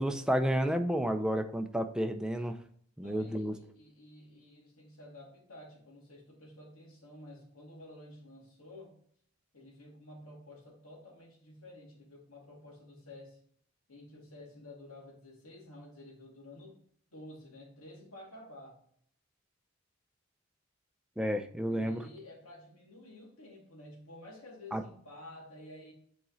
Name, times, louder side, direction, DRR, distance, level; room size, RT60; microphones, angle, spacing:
voice 1, 0.0-2.6 3.0-3.5 21.2-22.0 24.7-24.8, equal, 5° right, 6 dB, 0.4 m, -31 dB
voice 2, 3.0-8.9 9.5-13.4 13.9-16.8 17.1-18.8 21.7-25.9, left 1 dB, 85° left, -2 dB, 2.3 m, -51 dB
7.4 x 4.2 x 3.9 m, 0.63 s
head